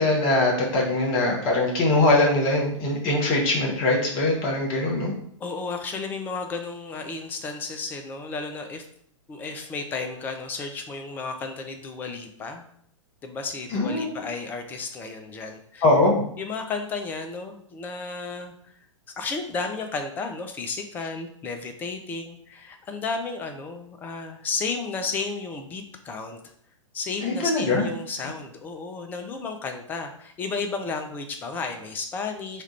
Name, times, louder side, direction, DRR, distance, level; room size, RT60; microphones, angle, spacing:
voice 1, 0.0-5.1 13.7-14.2 15.8-16.2 27.2-27.8, left 2 dB, 30° left, -1 dB, 1.1 m, -22 dB
voice 2, 5.4-8.8 9.3-12.6 13.2-15.8 16.4-18.7 19.2-26.4 26.9-32.6, left 4 dB, 10° left, 5 dB, 0.4 m, -33 dB
3.2 x 2.4 x 4.1 m, 0.65 s
figure-of-eight pair, 105°, 16 cm